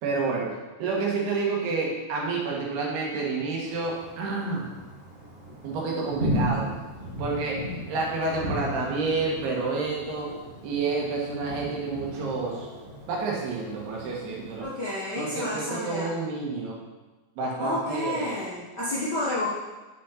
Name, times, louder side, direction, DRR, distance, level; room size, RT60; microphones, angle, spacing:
voice 1, 0.0-0.5 0.8-4.7 5.6-6.7 7.2-10.3 10.6-12.7 13.1-14.7 15.2-16.8 17.4-18.3, right 3 dB, 80° right, -2 dB, 3.6 m, -29 dB
Thunder, 3.7-14.6, equal, 25° right, 1.1 m, -36 dB
voice 2, 14.6-16.3 17.6-19.5, left 1 dB, 80° left, -8 dB, 0.9 m, -30 dB
9.5 x 6.4 x 4.2 m, 1.2 s
omnidirectional pair, 4.6 m